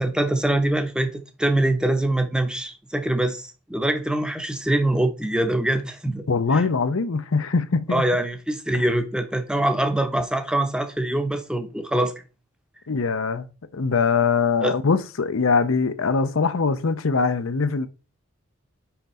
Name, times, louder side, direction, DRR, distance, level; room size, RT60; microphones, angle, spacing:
voice 1, 0.0-6.2 6.5-6.6 7.9-12.1 14.6-14.7, right 1 dB, 5° right, 0.7 m, -24 dB
voice 2, 6.3-8.0 8.7-8.9 12.9-13.5 13.7-17.9, left 4 dB, 80° left, 0.7 m, -22 dB
5.8 x 5.2 x 4.2 m
head